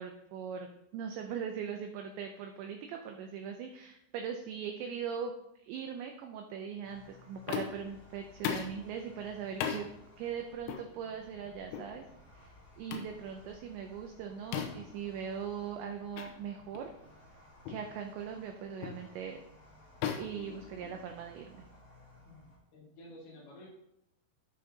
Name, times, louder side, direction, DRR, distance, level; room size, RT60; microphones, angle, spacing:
voice 1, 0.0-9.9 10.2-12.0 12.3-16.9 17.7-19.4 20.1-21.7, right 7 dB, 85° right, 4 dB, 2.5 m, -40 dB
sound 1, 6.8-22.6, left 1 dB, 25° left, 4.0 m, -58 dB
sound 2, 7.5-7.9 8.4-8.8 9.6-9.9 10.7-10.9 11.7-11.9 12.9-13.1 14.5-14.9 16.2-16.3 16.7-16.9 17.7-17.9 18.8-19.1 20.0-21.2, left 8 dB, 85° left, 3.4 m, -37 dB
voice 2, 22.3-23.7, left 1 dB, 65° left, -5 dB, 4.5 m, -52 dB
14.0 x 6.4 x 2.8 m, 0.83 s
omnidirectional pair, 5.8 m